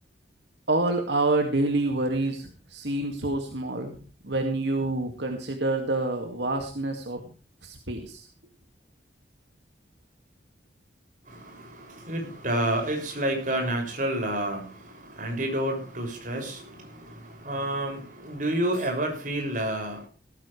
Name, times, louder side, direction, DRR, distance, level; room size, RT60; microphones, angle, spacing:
voice 1, 0.7-4.0 4.2-7.2 7.6-8.3, right 2 dB, 70° right, 4 dB, 2.2 m, -27 dB
voice 2, 11.3-20.1, right 1 dB, 45° right, 3 dB, 6.5 m, -30 dB
18.0 x 14.5 x 3.3 m, 0.35 s
head